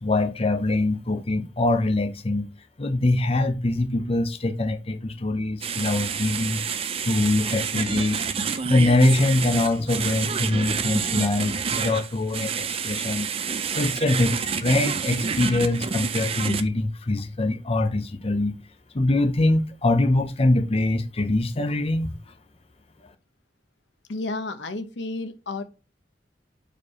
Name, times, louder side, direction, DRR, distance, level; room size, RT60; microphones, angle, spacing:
voice 1, 0.0-2.5 2.8-6.6 7.0-8.2 8.6-13.3 13.8-18.6 18.9-22.1, left 2 dB, 35° left, 0.7 m, -23 dB
sound 1, 5.6-16.6, right 6 dB, 35° right, 0.5 m, -28 dB
voice 2, 24.1-25.6, left 2 dB, 80° left, 1.0 m, -31 dB
5.0 x 4.6 x 4.7 m
head